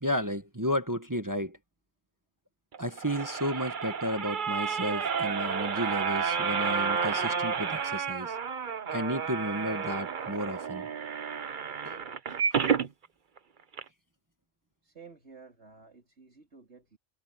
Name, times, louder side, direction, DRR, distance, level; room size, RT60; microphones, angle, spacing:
voice 1, 0.0-1.6 2.8-8.4 8.9-10.9 11.8-12.0 12.5-12.8, equal, 15° right, 1.3 m, -33 dB
sound 1, 2.7-12.9 13.4-13.5 13.7-13.8, right 6 dB, 50° right, 1.0 m, -31 dB
voice 2, 14.8-17.0, right 5 dB, 70° right, 4.0 m, -52 dB
omnidirectional pair, 1.2 m